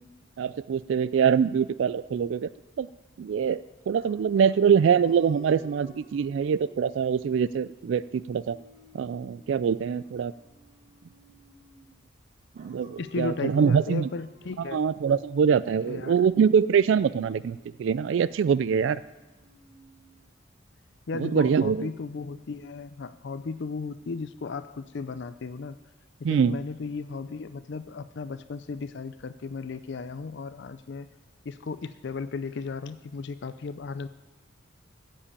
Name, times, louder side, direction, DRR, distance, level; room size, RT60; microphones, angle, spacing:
voice 1, 0.4-2.5 2.8-2.9 3.2-8.6 8.9-10.3 12.6-14.1 14.7-19.0 21.1-21.9 26.2-26.6, right 7 dB, 65° right, 18 dB, 0.3 m, -24 dB
sound 1, 3.9-12.0 12.6-20.6, right 1 dB, 40° right, 1.6 m, -55 dB
voice 2, 13.0-14.8 15.7-16.3 21.1-25.8 26.2-31.1 31.5-34.1, left 4 dB, 60° left, 12 dB, 0.4 m, -35 dB
15.0 x 5.5 x 8.4 m, 1.1 s
head